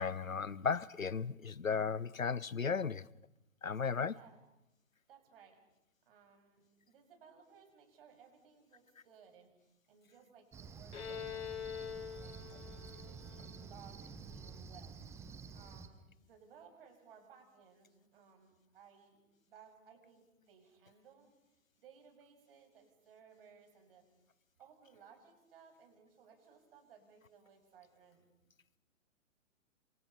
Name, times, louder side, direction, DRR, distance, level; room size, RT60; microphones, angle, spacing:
voice 1, 0.0-3.0 3.6-4.2, left 5 dB, 85° left, 0.8 m, -35 dB
voice 2, 5.1-5.6 6.1-14.9 15.5-19.2 19.5-21.3 21.8-24.0 24.6-28.3, right 7 dB, 45° right, 7.8 m, -61 dB
Cricket, 10.5-15.9, right 5 dB, 5° right, 1.0 m, -50 dB
Bowed string instrument, 10.9-14.5, left 8 dB, 55° left, 6.4 m, -45 dB
29.0 x 27.0 x 5.6 m
figure-of-eight pair, 125°, 39 cm